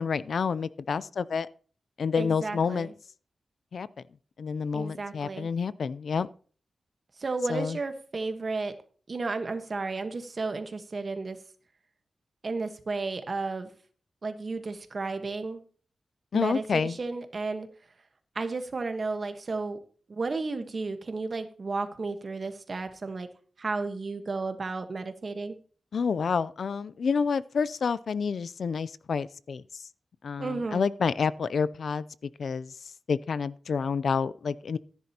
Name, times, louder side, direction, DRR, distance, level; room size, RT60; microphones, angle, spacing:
voice 1, 0.0-1.5 2.0-2.9 3.7-3.9 4.4-6.3 7.5-7.8 16.3-17.0 25.9-29.9 30.2-32.8 33.1-34.8, left 5 dB, 70° left, 18 dB, 0.4 m, -29 dB
voice 2, 2.2-2.9 4.7-5.5 7.2-8.8 9.1-11.4 12.4-13.7 14.2-15.6 16.3-17.7 18.3-19.8 20.1-23.3 23.6-25.5 30.4-30.9, right 3 dB, 45° right, 8 dB, 1.3 m, -33 dB
14.0 x 10.5 x 2.9 m, 0.43 s
wide cardioid pair, 110°, 0 cm